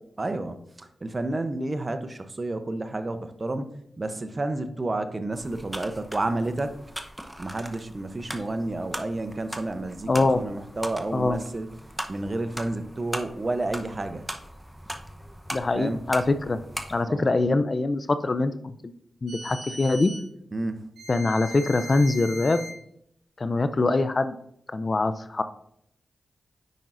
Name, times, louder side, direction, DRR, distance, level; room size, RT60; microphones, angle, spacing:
voice 1, 0.2-3.7 4.0-6.7 7.4-11.7 12.1-14.3 15.7-16.0 17.1-17.3 20.5-20.8, right 2 dB, 40° right, 9 dB, 0.7 m, -30 dB
sound 1, 5.3-17.0, equal, 10° right, 0.8 m, -39 dB
voice 2, 10.1-10.4 11.1-11.4 15.5-16.6 16.9-18.9 19.2-20.1 21.1-22.6 23.4-24.3 24.7-25.4, left 3 dB, 45° left, 11 dB, 0.5 m, -23 dB
sound 2, 19.3-20.3 21.0-22.8, equal, 85° right, 1.2 m, -39 dB
9.1 x 5.3 x 2.6 m, 0.72 s
cardioid pair, 45°, 0 cm